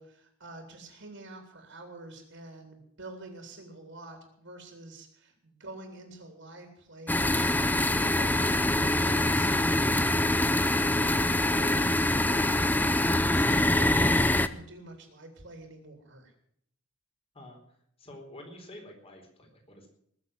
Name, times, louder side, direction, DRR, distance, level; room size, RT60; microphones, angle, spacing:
voice 1, 0.0-16.3, right 2 dB, 60° right, 4 dB, 3.3 m, -47 dB
sound 1, 7.1-14.5, left 1 dB, 10° left, 0.6 m, -24 dB
voice 2, 18.0-19.9, left 1 dB, 25° left, 2 dB, 4.2 m, -48 dB
20.5 x 7.4 x 7.9 m, 0.70 s
head